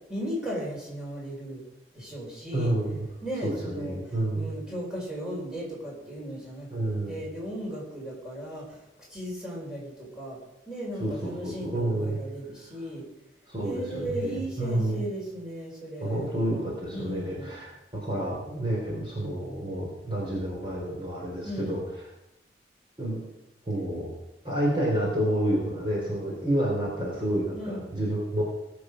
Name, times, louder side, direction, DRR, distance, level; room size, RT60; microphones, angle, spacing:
voice 1, 0.1-1.6 1.9-2.7 3.2-4.0 4.3-8.8 9.1-10.4 10.7-13.0 13.6-16.3 16.9-17.5 21.4-21.8 27.5-27.8, equal, 5° right, -5 dB, 4.7 m, -36 dB
voice 2, 2.5-3.1 3.4-4.5 6.7-7.2 11.0-12.2 13.5-15.0 16.0-21.8 23.0-23.2 23.7-24.1 24.4-28.4, right 1 dB, 25° right, -4 dB, 3.6 m, -29 dB
19.5 x 6.9 x 6.4 m, 0.93 s
head